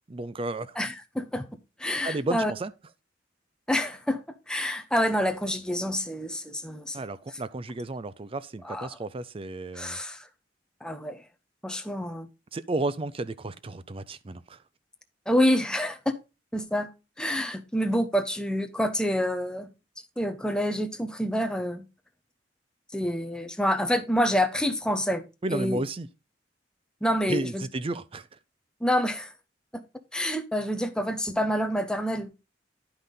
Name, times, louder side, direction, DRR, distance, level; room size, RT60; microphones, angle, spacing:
voice 1, 0.1-0.8 2.0-2.7 6.9-10.0 12.5-14.6 25.4-26.1 27.3-28.3, right 2 dB, 30° right, 0.5 m, -32 dB
voice 2, 0.8-1.5 1.8-2.5 3.7-4.2 4.5-7.0 8.6-8.9 9.7-10.3 10.8-11.2 11.6-12.3 15.3-16.0 16.5-16.9 17.2-19.7 20.2-21.9 22.9-25.2 25.5-25.8 27.0-27.6 28.8-29.3 29.7-29.8 30.1-32.3, equal, 5° left, 0.8 m, -27 dB
10.0 x 5.5 x 3.9 m
head